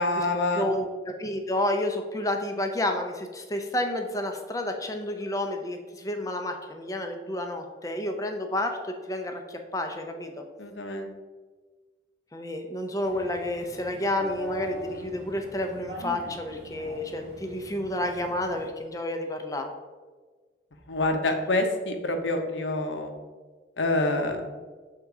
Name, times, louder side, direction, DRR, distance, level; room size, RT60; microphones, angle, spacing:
voice 1, 0.0-0.6 10.6-11.1 20.9-23.1 23.8-24.4, left 2 dB, 85° left, 5 dB, 0.9 m, -26 dB
voice 2, 0.5-10.4 12.3-19.7, left 1 dB, 20° left, 5 dB, 0.6 m, -30 dB
sound 1, 13.0-18.7, left 1 dB, 70° right, 1.2 m, -41 dB
6.7 x 3.7 x 4.7 m, 1.4 s
head